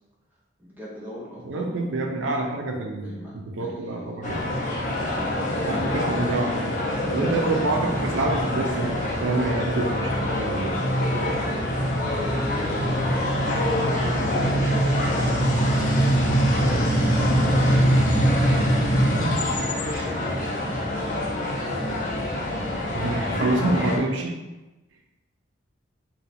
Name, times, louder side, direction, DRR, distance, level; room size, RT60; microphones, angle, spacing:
voice 1, 0.6-2.4 3.0-4.2 5.0-5.9 7.3-7.8 12.0-13.8 14.4-18.9 19.4-21.3, equal, 10° right, -6 dB, 0.7 m, -40 dB
voice 2, 1.4-4.5 5.7-6.7 7.1-10.8 22.9-24.4, right 2 dB, 85° right, 1 dB, 0.5 m, -27 dB
sound 1, 4.2-24.0, equal, 40° left, 0.6 m, -24 dB
2.7 x 2.3 x 4.1 m, 1.1 s
head